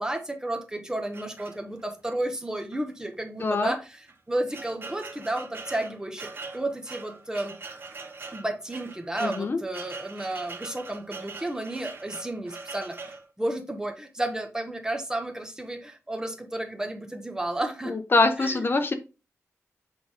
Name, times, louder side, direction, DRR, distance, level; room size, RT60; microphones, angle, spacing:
voice 1, 0.0-3.9 4.3-7.6 8.3-13.0 13.4-17.9 18.4-18.6, right 1 dB, 10° right, 5 dB, 1.5 m, -32 dB
sound 1, 1.1-2.0 2.7-2.9 3.1-3.2 3.9-13.3, right 3 dB, 45° right, 1.5 m, -42 dB
voice 2, 3.4-3.7 9.2-9.6 17.9-18.9, left 3 dB, 40° left, 7 dB, 0.8 m, -24 dB
8.6 x 3.7 x 3.6 m, 0.30 s
wide cardioid pair, 90°, 5 cm